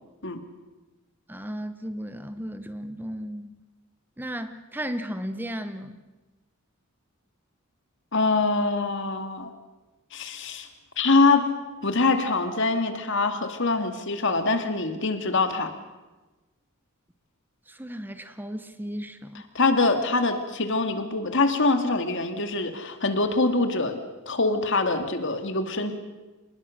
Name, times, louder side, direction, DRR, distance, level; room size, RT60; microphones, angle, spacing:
voice 1, 1.3-3.5 4.2-6.0 17.7-19.4, equal, 10° right, 10 dB, 0.9 m, -35 dB
voice 2, 8.1-9.5 10.1-10.7 11.0-15.7 19.5-24.0 24.3-25.9, left 3 dB, 60° left, 7 dB, 2.3 m, -24 dB
26.0 x 20.0 x 6.5 m, 1.2 s
head